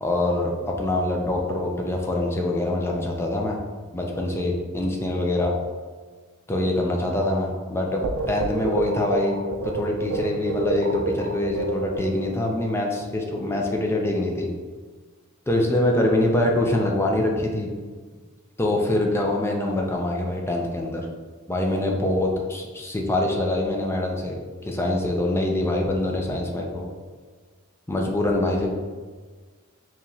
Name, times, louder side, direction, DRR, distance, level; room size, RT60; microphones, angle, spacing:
voice 1, 0.0-3.6 3.9-5.6 6.5-9.4 9.6-14.5 15.5-17.7 18.6-21.1 21.5-26.9 27.9-28.7, left 1 dB, 10° left, 0 dB, 0.4 m, -24 dB
sound 1, 8.0-12.5, right 4 dB, 75° right, 0.4 m, -28 dB
4.5 x 3.0 x 2.7 m, 1.5 s
head